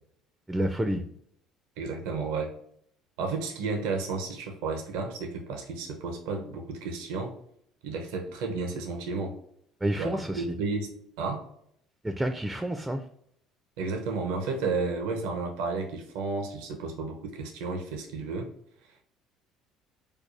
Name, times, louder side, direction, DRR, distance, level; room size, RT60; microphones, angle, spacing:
voice 1, 0.5-1.0 9.8-10.5 12.0-13.0, right 1 dB, 10° right, 7 dB, 0.4 m, -29 dB
voice 2, 1.8-2.5 3.2-7.4 7.8-9.4 10.0-11.4 13.8-18.5, right 4 dB, 85° right, 3 dB, 0.6 m, -32 dB
4.6 x 2.3 x 2.5 m, 0.69 s
supercardioid pair, 90°, 0 cm